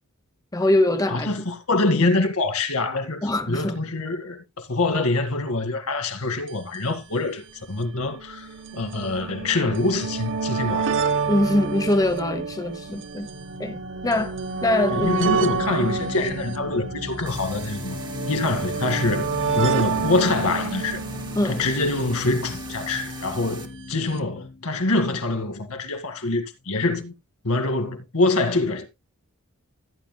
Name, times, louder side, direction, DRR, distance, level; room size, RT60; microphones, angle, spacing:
voice 1, 0.5-1.3 3.2-3.8 11.3-13.3 13.6-13.8 14.0-14.3 14.6-15.4 15.9-16.0 21.3-21.6, left 1 dB, 15° left, 0.9 m, -23 dB
voice 2, 1.1-10.9 14.9-18.0 18.3-19.3 19.6-21.0 21.4-27.1 27.4-28.9, left 2 dB, 80° left, 1.9 m, -25 dB
sound 1, 6.5-6.6 6.7-6.8 7.7-22.9 23.9-24.0 24.2-24.3, right 5 dB, 60° right, 0.8 m, -29 dB
sound 2, 12.8-26.1, left 3 dB, 40° left, 0.5 m, -38 dB
sound 3, 17.3-23.7, right 4 dB, 20° right, 1.4 m, -42 dB
16.0 x 9.1 x 2.2 m
head